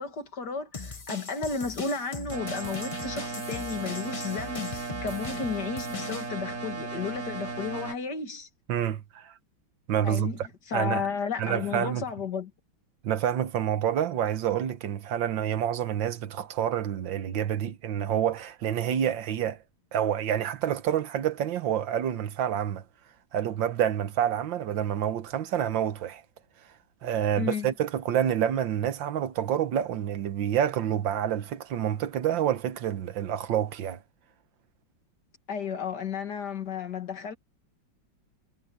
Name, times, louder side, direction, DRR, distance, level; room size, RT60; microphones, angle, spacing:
voice 1, 0.0-8.5 10.0-10.4 10.7-12.5 27.4-27.7 35.5-37.4, left 5 dB, 60° left, 2.6 m, -33 dB
sound 1, 0.7-6.3, left 3 dB, 25° left, 0.7 m, -40 dB
sound 2, 2.3-7.9, right 4 dB, 50° right, 3.3 m, -36 dB
voice 2, 8.7-9.3 9.9-10.3 10.7-11.1 11.4-12.0 13.0-19.6 19.9-22.8 23.3-26.2 27.0-34.0, right 10 dB, 75° right, 1.7 m, -28 dB
omnidirectional pair, 2.1 m